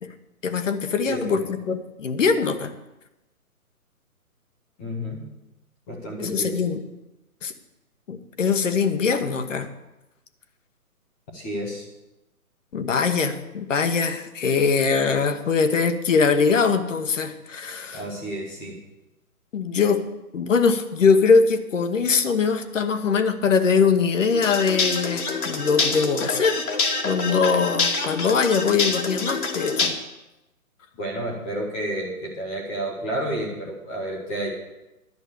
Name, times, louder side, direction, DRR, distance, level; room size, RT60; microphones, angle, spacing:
voice 1, 0.4-1.4 1.7-2.7 6.2-6.8 7.4-7.5 8.1-9.7 12.7-18.0 19.5-20.0 20.3-26.6 27.0-29.9, left 5 dB, 55° left, 8 dB, 1.3 m, -22 dB
voice 2, 1.0-1.4 4.8-5.2 5.9-6.7 11.3-11.8 17.9-18.8 31.0-34.5, right 1 dB, 5° left, -1 dB, 0.7 m, -30 dB
sound 1, 24.3-29.9, left 4 dB, 75° left, 2.2 m, -26 dB
11.0 x 6.1 x 8.4 m, 0.96 s
hypercardioid pair, 150°, 45 cm